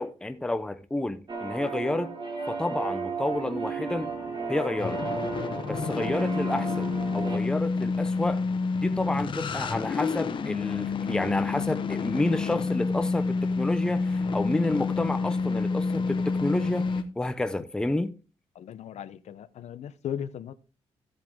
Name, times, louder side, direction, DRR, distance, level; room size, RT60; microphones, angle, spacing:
voice 1, 0.0-2.1 2.5-4.1 4.5-5.0 5.6-8.4 8.7-18.1, left 2 dB, 5° left, 0.5 m, -30 dB
sound 1, 1.3-7.4, right 4 dB, 40° right, 2.5 m, -34 dB
sound 2, 3.2-17.0, left 4 dB, 45° left, 1.1 m, -29 dB
voice 2, 18.6-20.5, left 9 dB, 75° left, 0.8 m, -37 dB
14.5 x 7.8 x 3.6 m
wide cardioid pair, 170°, 12 cm